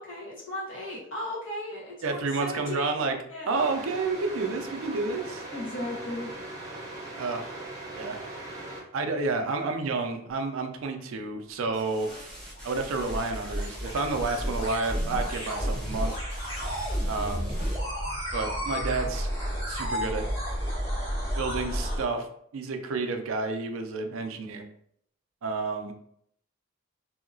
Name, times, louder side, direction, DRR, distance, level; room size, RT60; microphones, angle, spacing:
voice 1, 0.0-3.0 3.3-3.5 5.5-6.3, left 1 dB, 60° left, -5 dB, 1.2 m, -36 dB
voice 2, 2.0-3.2 3.5-5.4 7.2-7.6 7.9-8.2 8.9-12.3 12.6-16.1 17.1-17.5 18.3-19.3 19.7-20.3 21.4-22.3 22.5-24.7 25.4-25.9, right 3 dB, 70° right, 5 dB, 0.4 m, -30 dB
sound 1, 3.5-8.8, right 2 dB, 15° right, 0.7 m, -40 dB
sound 2, 11.7-17.8, equal, 5° left, 1.2 m, -45 dB
sound 3, 12.3-22.0, equal, 25° left, 1.5 m, -31 dB
2.8 x 2.7 x 2.6 m, 0.70 s
head